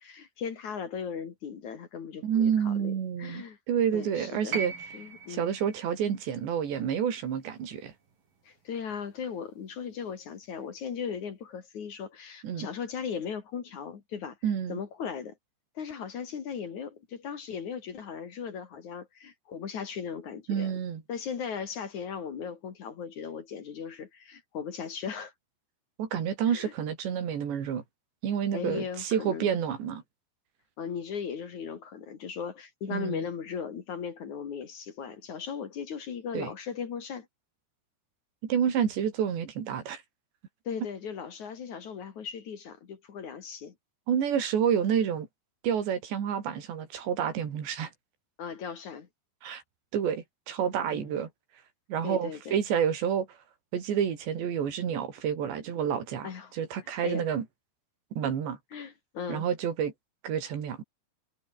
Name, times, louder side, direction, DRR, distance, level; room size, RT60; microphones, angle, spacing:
voice 1, 0.0-2.9 3.2-3.6 3.9-5.5 8.4-14.4 14.7-15.3 15.7-20.7 21.1-25.3 26.5-26.7 28.5-29.5 30.8-37.3 40.6-43.7 48.4-49.1 50.9-51.1 52.0-52.6 56.2-56.5 56.8-57.3 58.7-59.5, left 7 dB, 50° left, 3.2 m, -37 dB
voice 2, 2.2-4.7 5.3-7.9 12.4-12.7 14.4-14.8 20.5-21.0 26.0-27.8 28.2-30.0 32.9-33.2 36.4-36.5 38.4-40.0 44.1-45.3 45.6-47.9 49.4-49.6 49.9-51.3 51.9-53.3 53.7-57.5 58.2-58.6 59.3-59.9 60.2-60.8, right 8 dB, 85° right, 5.6 m, -29 dB
sound 1, 4.5-8.7 9.9-10.0, right 5 dB, 55° right, 6.9 m, -41 dB
omnidirectional pair, 4.9 m